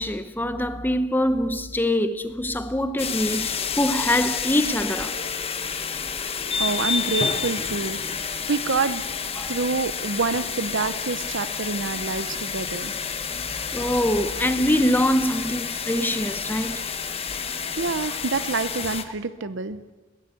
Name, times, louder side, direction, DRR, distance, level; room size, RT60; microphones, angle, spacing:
voice 1, 0.0-5.2 9.4-9.5 10.8-10.9 13.7-16.8, left 1 dB, 10° left, 0.8 m, -24 dB
sound 1, 3.0-19.0, left 6 dB, 30° left, 1.3 m, -29 dB
voice 2, 6.6-9.0 9.5-13.0 17.8-19.8, right 4 dB, 60° right, 0.7 m, -27 dB
22.0 x 17.5 x 8.4 m
head